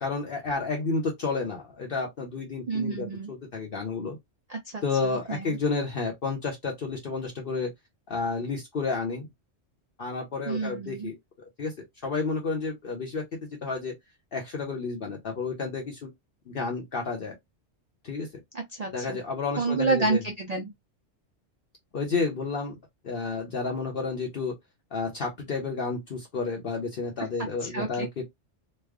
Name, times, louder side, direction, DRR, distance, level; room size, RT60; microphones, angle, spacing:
voice 1, 0.0-4.2 4.8-7.7 8.1-9.3 10.0-11.2 11.6-11.7 12.0-13.2 13.6-13.9 14.3-16.1 16.5-17.3 18.0-18.3 18.9-20.2 21.9-22.8 23.0-24.5 24.9-28.2, left 4 dB, 55° left, 0.9 m, -31 dB
voice 2, 2.7-3.3 4.5-5.6 10.5-11.1 18.5-19.2 19.6-20.7 27.2-27.3 27.6-28.1, right 3 dB, 50° right, 0.5 m, -29 dB
3.2 x 2.1 x 3.5 m
omnidirectional pair, 1.2 m